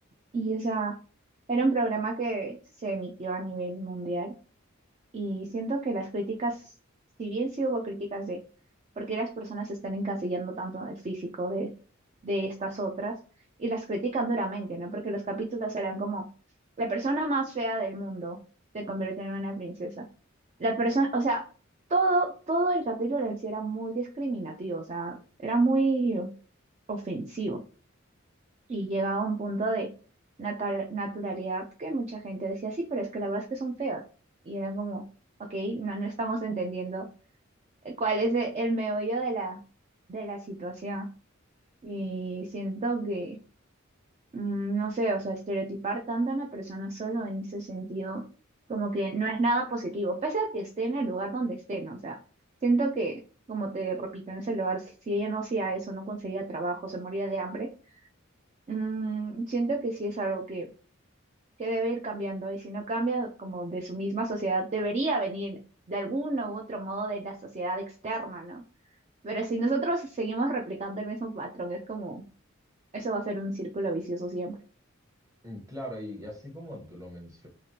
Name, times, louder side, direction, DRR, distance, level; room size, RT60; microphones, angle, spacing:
voice 1, 0.3-1.0 1.5-4.3 5.1-6.7 7.2-8.4 9.0-11.7 12.2-13.2 13.6-16.3 16.8-18.4 18.7-20.1 20.6-21.4 21.9-26.3 26.9-27.6 28.7-29.9 30.4-34.0 34.5-35.0 35.4-37.1 37.8-39.6 40.1-41.1 41.8-43.4 44.3-48.2 48.7-52.2 52.6-53.2 53.5-57.7 58.7-60.7 61.6-65.6 65.9-68.6 69.2-72.2 72.9-74.6, right 2 dB, 30° right, 2 dB, 0.4 m, -30 dB
voice 2, 75.4-77.5, equal, 15° right, -1 dB, 1.1 m, -40 dB
3.2 x 2.4 x 2.7 m, 0.38 s
head